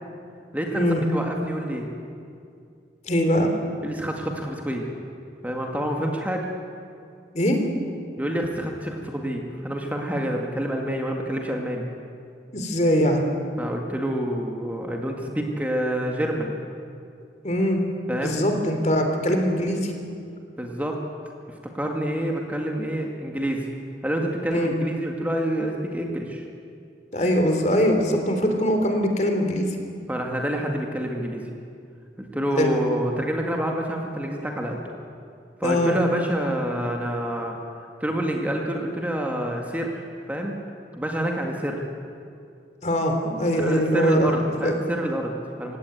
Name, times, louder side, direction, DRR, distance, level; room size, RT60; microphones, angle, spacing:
voice 1, 0.5-1.9 3.8-4.9 5.4-6.5 8.2-11.8 13.6-16.5 18.1-18.4 20.6-21.0 21.7-23.7 24.0-26.4 30.1-31.4 32.2-34.8 35.6-37.6 38.0-40.6 40.9-41.8 43.5-45.8, equal, 10° right, 1 dB, 2.0 m, -27 dB
voice 2, 3.0-3.5 7.3-7.6 12.5-13.2 17.4-17.8 18.2-19.9 24.5-24.7 27.1-29.7 32.6-32.7 35.6-35.9 42.8-44.8, equal, 40° left, 4 dB, 3.4 m, -22 dB
29.0 x 17.0 x 9.3 m, 2.4 s
head